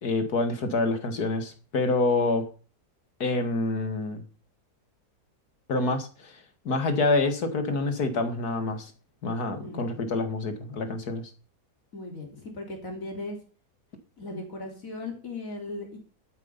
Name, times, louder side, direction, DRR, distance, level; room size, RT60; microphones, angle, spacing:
voice 1, 0.0-2.4 3.2-4.2 5.7-6.3 6.7-8.9 9.2-11.2, left 3 dB, 70° left, 8 dB, 2.4 m, -27 dB
voice 2, 9.5-9.8 11.9-13.4 14.2-16.0, left 2 dB, 55° left, 2 dB, 3.9 m, -37 dB
12.0 x 9.3 x 5.6 m, 0.38 s
omnidirectional pair, 1.7 m